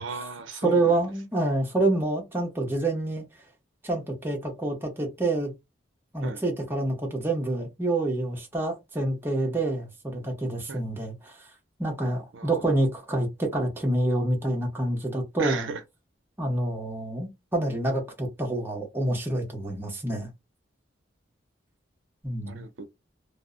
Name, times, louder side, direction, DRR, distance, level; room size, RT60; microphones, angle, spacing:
voice 1, 0.0-1.0 6.2-6.4 10.7-10.8 12.3-12.7 15.4-15.8 22.4-22.9, right 4 dB, 85° right, 0.5 m, -36 dB
voice 2, 0.6-3.2 3.8-5.5 6.1-11.5 11.8-15.7 16.4-20.3 22.2-22.6, right 2 dB, 10° right, 0.7 m, -27 dB
2.0 x 2.0 x 3.6 m
head